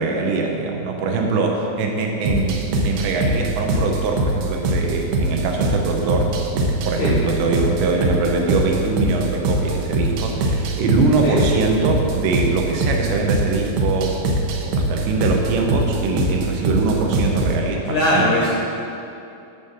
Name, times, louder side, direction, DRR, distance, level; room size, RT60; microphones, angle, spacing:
voice 1, 0.0-14.2 14.7-18.3, right 3 dB, 90° right, 1 dB, 3.2 m, -22 dB
sound 1, 2.3-17.6, right 2 dB, 75° right, 2.7 m, -22 dB
voice 2, 17.8-18.5, left 1 dB, 65° left, -4 dB, 1.8 m, -19 dB
12.5 x 5.7 x 6.7 m, 2.7 s
omnidirectional pair, 4.9 m